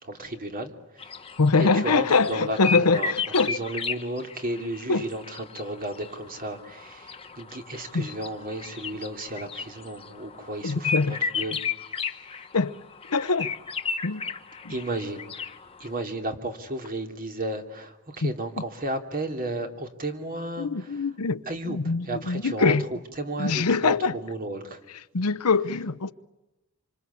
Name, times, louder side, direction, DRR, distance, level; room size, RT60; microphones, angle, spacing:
voice 1, 0.0-1.2 1.6-3.1 3.5-11.6 14.2-14.3 14.7-15.2 15.8-21.1 21.5-24.8, right 1 dB, 40° right, 2.9 m, -33 dB
sound 1, 1.0-16.0, left 6 dB, 25° left, 1.3 m, -34 dB
voice 2, 1.4-3.6 4.9-5.1 7.9-8.1 10.6-11.2 12.5-12.7 13.1-13.5 14.0-14.2 14.6-14.7 18.2-18.3 20.6-22.9 23.4-24.2 25.1-26.1, left 4 dB, 80° left, 0.9 m, -23 dB
27.5 x 25.5 x 8.4 m
head